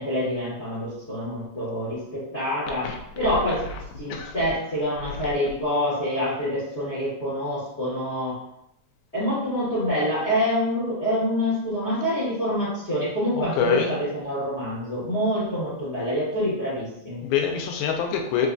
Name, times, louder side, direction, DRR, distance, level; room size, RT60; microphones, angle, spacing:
voice 1, 0.0-3.6 4.0-8.4 9.1-17.2, equal, 60° left, -11 dB, 0.6 m, -26 dB
voice 2, 13.3-14.0 17.2-18.5, left 7 dB, 90° left, 3 dB, 2.0 m, -25 dB
4.6 x 2.3 x 2.5 m, 0.79 s
omnidirectional pair, 3.3 m